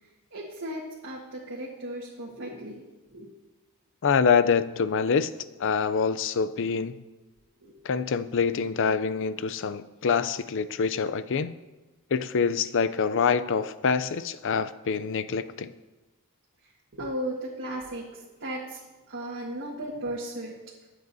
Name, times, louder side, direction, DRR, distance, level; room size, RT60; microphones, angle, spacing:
voice 1, 0.3-2.8 3.1-3.3 7.6-7.7 16.6-18.8 19.1-20.5, right 1 dB, 60° right, -4 dB, 1.7 m, -36 dB
voice 2, 4.0-5.3 5.6-7.0 7.8-11.5 12.1-15.7, left 5 dB, 60° left, 14 dB, 0.5 m, -25 dB
23.0 x 7.9 x 2.7 m, 1.2 s
head